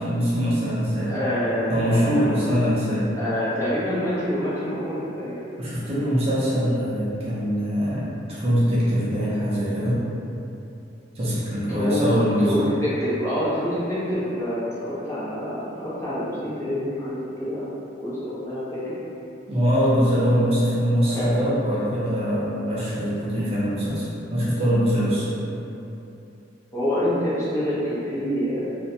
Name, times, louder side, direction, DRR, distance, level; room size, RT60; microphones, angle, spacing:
voice 1, 0.0-1.1 1.7-3.1 5.6-10.0 11.2-12.6 19.5-25.3, equal, 35° right, -8 dB, 0.5 m, -23 dB
voice 2, 1.1-2.7 3.2-5.5 11.7-17.7 18.0-18.9 21.1-21.5 26.7-28.7, equal, 15° left, -10 dB, 0.6 m, -27 dB
2.6 x 2.0 x 2.7 m, 2.8 s
head